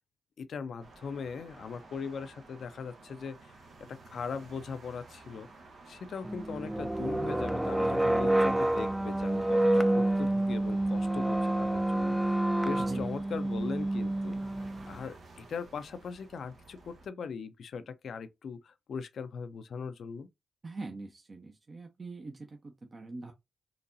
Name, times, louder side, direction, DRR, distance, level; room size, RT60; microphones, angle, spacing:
voice 1, 0.4-3.6 3.9-5.5 5.9-20.3, left 6 dB, 75° left, 0.5 m, -40 dB
sound 1, 0.8-17.1, right 3 dB, 80° right, 1.0 m, -53 dB
sound 2, 6.2-15.0, right 1 dB, 10° right, 0.4 m, -28 dB
voice 2, 12.8-13.1 20.6-23.3, right 3 dB, 45° right, 0.7 m, -43 dB
4.0 x 2.9 x 2.6 m
cardioid pair, 55°, 0 cm